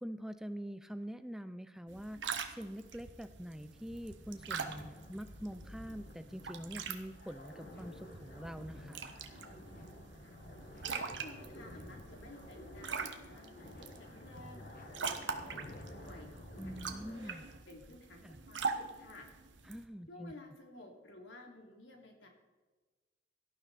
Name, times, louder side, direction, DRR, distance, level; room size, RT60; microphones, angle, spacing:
voice 1, 0.0-9.0 16.6-17.4 18.2-18.4 19.6-20.3, equal, 5° right, 11 dB, 0.5 m, -45 dB
sound 1, 1.9-19.8, right 5 dB, 80° right, 1.3 m, -44 dB
sound 2, 3.1-17.3, left 1 dB, 50° left, 1.9 m, -52 dB
voice 2, 10.8-14.6 14.9-16.3 16.6-17.4 17.7-19.2 20.1-22.3, left 2 dB, 85° left, 2 dB, 3.2 m, -53 dB
18.0 x 12.0 x 4.2 m, 1.3 s
head